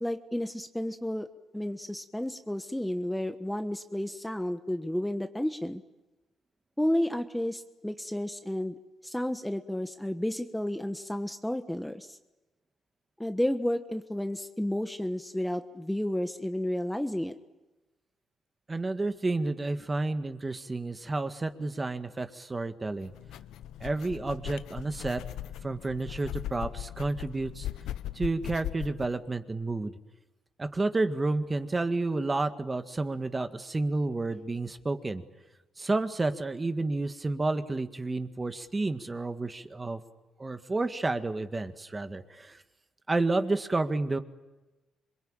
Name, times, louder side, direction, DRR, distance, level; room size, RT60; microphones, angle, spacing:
voice 1, 0.0-1.3 1.5-5.8 6.8-8.7 9.0-12.2 13.2-17.3, left 1 dB, 5° left, 8 dB, 1.3 m, -31 dB
voice 2, 18.7-23.1 23.8-25.2 25.6-27.7 28.2-29.9 30.6-35.2 35.8-40.0 40.4-42.6 43.1-44.2, right 2 dB, 25° right, 8 dB, 1.8 m, -30 dB
sound 1, 23.0-29.1, left 12 dB, 85° left, 0.9 m, -39 dB
27.0 x 22.5 x 9.0 m, 1.1 s
cardioid pair, 90°, 0 cm